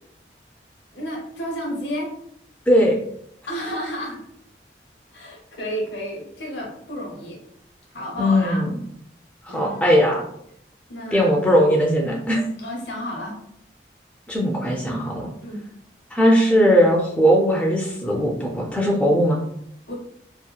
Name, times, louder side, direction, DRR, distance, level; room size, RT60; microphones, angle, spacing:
voice 1, 0.9-2.1 3.5-4.2 5.1-7.4 7.9-8.6 9.5-10.0 10.9-11.5 12.6-13.4 15.4-15.7 19.9-20.0, equal, 75° left, -1 dB, 0.8 m, -31 dB
voice 2, 2.7-3.0 8.2-8.8 9.4-10.2 11.1-12.4 14.3-15.3 16.1-19.4, equal, 5° left, -3 dB, 0.3 m, -19 dB
2.7 x 2.1 x 2.2 m, 0.72 s
head